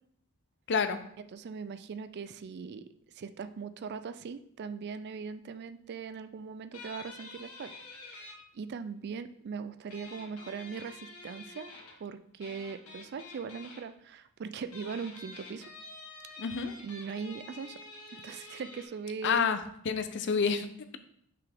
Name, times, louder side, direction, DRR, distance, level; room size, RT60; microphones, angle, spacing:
voice 1, 0.7-1.0 16.4-16.7 19.2-19.6 19.9-20.7, left 6 dB, 55° left, 10 dB, 0.5 m, -28 dB
voice 2, 1.3-2.8 3.1-11.7 12.0-15.7 16.8-17.8 18.1-19.5, right 5 dB, 50° right, 11 dB, 0.3 m, -40 dB
sound 1, 6.7-8.3 9.9-12.0 12.4-13.8 14.6-18.9, left 3 dB, 90° left, 1.7 m, -48 dB
5.9 x 5.7 x 3.5 m, 0.70 s
head